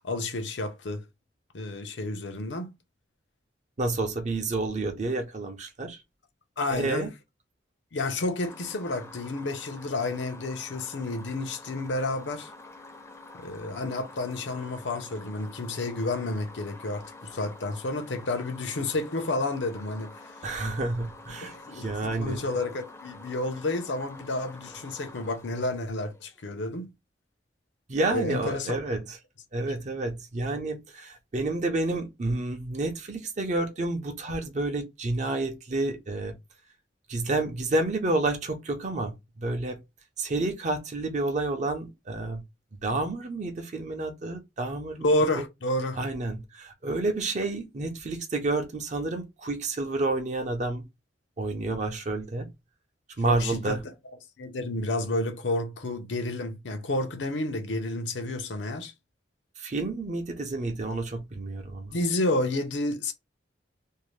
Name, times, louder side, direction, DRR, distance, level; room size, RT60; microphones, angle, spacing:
voice 1, 0.0-1.0 1.5-2.7 6.6-7.1 7.9-12.5 13.4-20.3 21.4-26.9 28.1-28.8 45.0-46.0 53.2-53.8 54.4-58.9 61.9-63.1, left 2 dB, 85° left, 0.7 m, -30 dB
voice 2, 3.8-6.0 6.7-7.1 20.4-22.4 27.9-29.2 29.5-36.4 37.1-39.8 40.2-42.4 42.8-45.4 46.0-50.8 51.4-52.5 53.2-53.8 59.6-62.0, right 2 dB, 40° right, 0.6 m, -30 dB
sound 1, 8.4-26.4, left 2 dB, 15° left, 0.5 m, -47 dB
2.7 x 2.1 x 3.1 m
head